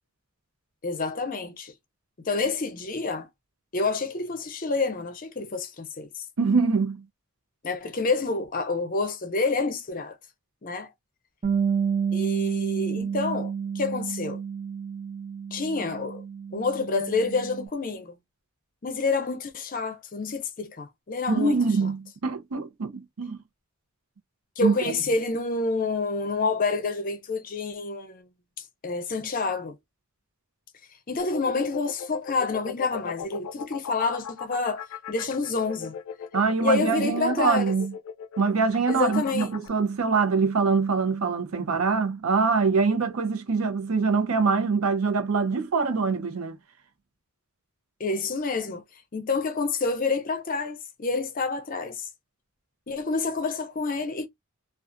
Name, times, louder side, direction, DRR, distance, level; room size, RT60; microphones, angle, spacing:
voice 1, 0.8-1.7 2.2-3.3 3.7-6.2 7.6-10.2 10.6-10.9 12.1-14.4 15.5-16.2 16.5-18.2 18.8-21.5 24.6-28.3 28.8-29.7 31.1-36.0 36.6-37.8 38.9-39.5 41.7-41.8 48.0-48.8 49.1-52.0 52.9-54.3, left 3 dB, 40° left, 0.6 m, -28 dB
voice 2, 6.4-7.0 21.3-23.4 24.6-25.0 36.3-37.9 38.4-46.6, right 4 dB, 85° right, 0.6 m, -24 dB
Bass guitar, 11.4-17.7, right 6 dB, 35° right, 0.4 m, -30 dB
sound 1, 31.2-39.7, left 6 dB, 90° left, 0.3 m, -38 dB
2.4 x 2.3 x 2.5 m
head